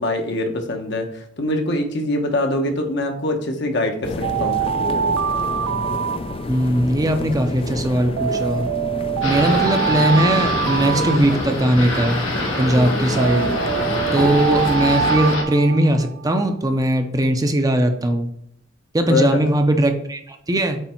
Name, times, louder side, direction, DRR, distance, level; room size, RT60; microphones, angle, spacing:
voice 1, 0.0-4.6 13.3-13.5 19.1-19.4, left 1 dB, 60° left, 4 dB, 1.1 m, -23 dB
sound 1, 4.0-15.4, left 3 dB, 30° left, 0.4 m, -30 dB
Alarm, 4.2-6.8 8.2-11.8 13.2-16.4, right 8 dB, 90° right, 0.3 m, -24 dB
voice 2, 6.5-8.7 9.2-12.2 12.6-13.5 14.1-18.3 18.9-20.8, right 1 dB, 20° right, 6 dB, 0.6 m, -19 dB
sound 2, 9.2-15.4, left 1 dB, 85° left, 1.5 m, -25 dB
8.2 x 3.3 x 4.4 m, 0.71 s
head